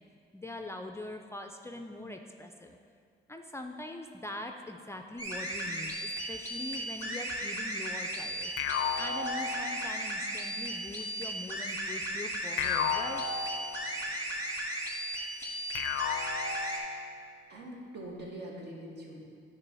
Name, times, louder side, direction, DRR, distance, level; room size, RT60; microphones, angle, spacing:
voice 1, 0.3-2.8 3.3-5.9 6.3-8.5 9.0-13.2, left 1 dB, 15° left, 3 dB, 0.4 m, -42 dB
sound 1, 5.2-16.8, right 1 dB, 20° right, 1.8 m, -36 dB
sound 2, 8.6-10.2 12.6-14.2 15.7-17.3, left 6 dB, 90° left, 0.5 m, -34 dB
voice 2, 17.5-19.4, right 1 dB, 60° right, -3 dB, 1.9 m, -43 dB
9.7 x 3.5 x 6.1 m, 2.2 s
cardioid pair, 90°, 20 cm